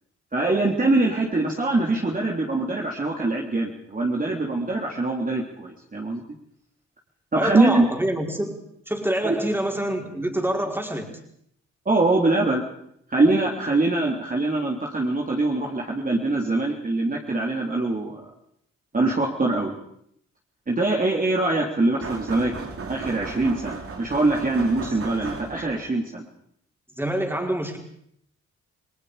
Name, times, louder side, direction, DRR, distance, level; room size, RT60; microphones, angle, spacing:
voice 1, 0.3-6.2 7.3-7.8 9.2-9.3 11.8-12.6 13.1-18.2 18.9-19.7 20.7-22.5 22.9-26.2, right 2 dB, 30° right, -2 dB, 3.4 m, -23 dB
voice 2, 7.3-11.2 27.0-27.8, right 1 dB, 10° right, 1 dB, 5.0 m, -26 dB
sound 1, 22.0-25.9, right 4 dB, 50° right, 3.2 m, -36 dB
28.0 x 19.0 x 5.1 m, 0.72 s
cardioid pair, 65°, 29 cm